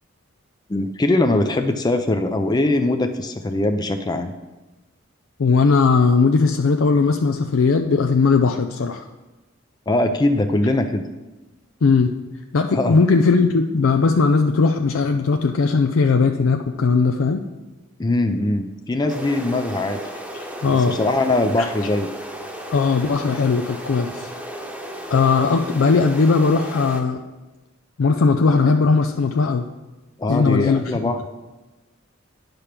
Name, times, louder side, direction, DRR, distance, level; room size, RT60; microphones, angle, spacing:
voice 1, 0.7-4.3 9.9-11.0 12.7-13.0 18.0-20.0 20.6-22.1 30.2-31.3, left 2 dB, 20° left, 6 dB, 0.4 m, -21 dB
voice 2, 5.4-9.1 11.8-12.1 12.5-17.4 20.3-21.0 22.7-24.3 25.1-27.2 28.0-29.6 30.3-31.0, left 4 dB, 80° left, 5 dB, 0.5 m, -18 dB
sound 1, 19.1-27.0, right 1 dB, 5° right, 1.0 m, -34 dB
9.7 x 5.2 x 5.8 m, 1.1 s
head